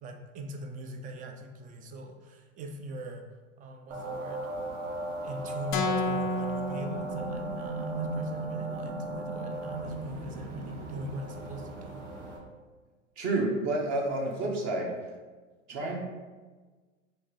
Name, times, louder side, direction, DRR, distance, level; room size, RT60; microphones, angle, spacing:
voice 1, 0.0-3.3 3.6-4.5 4.8-12.1, right 1 dB, 20° right, 5 dB, 0.4 m, -41 dB
sound 1, 3.9-12.4, right 2 dB, 65° right, 1.0 m, -36 dB
sound 2, 5.7-7.8, left 2 dB, 35° left, 0.5 m, -31 dB
voice 2, 13.2-14.9 15.7-16.0, right 2 dB, 45° right, 0 dB, 1.0 m, -29 dB
4.4 x 2.7 x 3.2 m, 1.3 s
hypercardioid pair, 95°, 39 cm